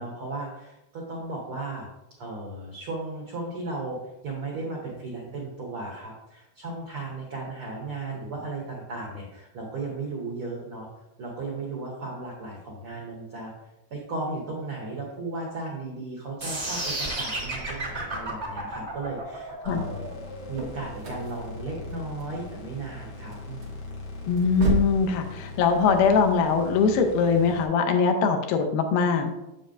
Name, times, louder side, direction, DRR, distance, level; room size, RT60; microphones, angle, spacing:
voice 1, 0.0-1.9 2.2-10.9 11.2-13.5 13.9-20.1 20.5-23.8, right 2 dB, 80° right, -3 dB, 1.2 m, -35 dB
sound 1, 16.4-22.4, right 2 dB, 35° right, 1.0 m, -33 dB
sound 2, 19.6-27.6, left 3 dB, 65° left, 2.8 m, -40 dB
sound 3, 20.3-25.1, right 4 dB, 55° right, 1.9 m, -33 dB
voice 2, 24.3-29.3, left 5 dB, 80° left, 4 dB, 2.5 m, -22 dB
7.6 x 7.1 x 2.6 m, 0.93 s
omnidirectional pair, 4.3 m